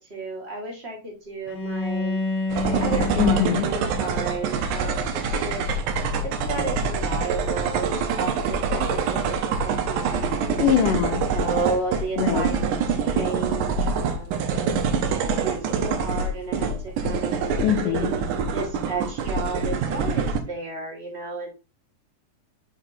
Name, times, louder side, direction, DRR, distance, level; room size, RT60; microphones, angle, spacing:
voice 1, 0.0-2.2 2.8-5.6 6.2-10.6 11.2-14.8 15.2-17.3 17.7-21.5, right 3 dB, 40° right, -1 dB, 0.9 m, -33 dB
Bowed string instrument, 1.5-6.5, left 3 dB, 60° left, 1.4 m, -31 dB
sound 1, 2.5-20.4, right 5 dB, 75° right, 2.2 m, -25 dB
voice 2, 3.2-3.7 10.6-11.2 12.2-12.4 17.6-18.1, left 10 dB, 80° left, 6 dB, 2.2 m, -22 dB
6.2 x 4.2 x 4.0 m, 0.32 s
omnidirectional pair, 3.9 m